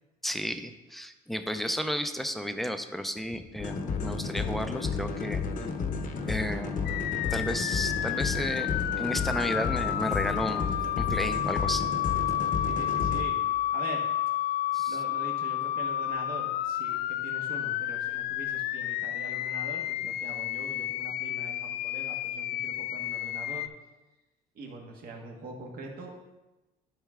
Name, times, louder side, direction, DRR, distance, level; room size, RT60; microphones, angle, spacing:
voice 1, 0.2-5.4 6.2-6.9 7.3-11.9 14.7-15.0, equal, ahead, 8 dB, 0.5 m, -33 dB
sound 1, 3.6-13.2, left 5 dB, 50° left, 0.9 m, -32 dB
sound 2, 6.9-23.7, left 12 dB, 75° left, 0.4 m, -31 dB
voice 2, 12.6-13.4 13.7-14.0 14.9-23.6 24.5-26.1, right 2 dB, 60° right, 1 dB, 1.6 m, -43 dB
11.5 x 4.5 x 3.6 m, 1.1 s
cardioid pair, 110°, 17 cm